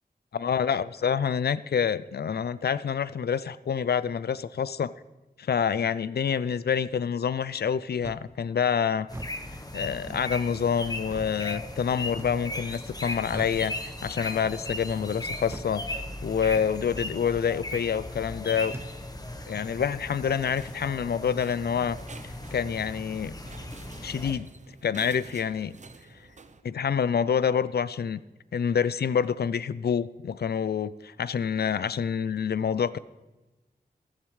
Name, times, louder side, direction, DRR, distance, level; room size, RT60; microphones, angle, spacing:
voice 1, 0.3-4.9 5.4-9.1 9.7-15.8 16.2-18.8 19.5-22.0 22.5-23.3 24.0-24.5 24.8-25.8 26.6-28.2 28.5-33.0, left 7 dB, 75° left, 17 dB, 0.4 m, -27 dB
sound 1, 8.0-8.3 9.0-9.4 10.1-10.3 11.1-11.3 12.2-12.5 13.3-13.6 14.5-14.7 15.5-15.7 16.5-16.7 17.7-17.9 18.7-18.9 19.8-20.0, right 2 dB, 15° right, 0.4 m, -41 dB
sound 2, 9.1-24.3, left 1 dB, 25° left, 1.1 m, -37 dB
sound 3, 20.6-26.6, right 4 dB, 45° right, 0.7 m, -50 dB
14.5 x 12.5 x 3.2 m, 1.1 s
wide cardioid pair, 105°, 17 cm